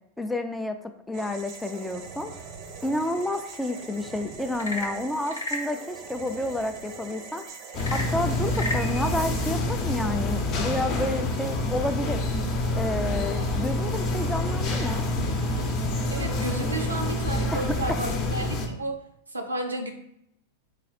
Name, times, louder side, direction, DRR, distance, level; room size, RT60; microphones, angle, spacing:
voice 1, 0.2-2.3 2.8-7.4 7.9-12.2 12.8-15.0 17.5-17.6 17.9-18.0, left 1 dB, 5° left, 7 dB, 0.4 m, -30 dB
sound 1, 1.1-9.5, right 5 dB, 40° right, 0.6 m, -42 dB
Frog / Percussion / Wood, 4.5-5.8 7.7-8.9, left 1 dB, 85° left, 0.8 m, -32 dB
sound 2, 7.7-18.7, left 1 dB, 40° left, 0.7 m, -27 dB
voice 2, 16.1-19.0 19.3-19.9, right 2 dB, 85° right, 4 dB, 0.6 m, -32 dB
4.1 x 2.3 x 4.1 m, 0.75 s
figure-of-eight pair, 95°, 0 cm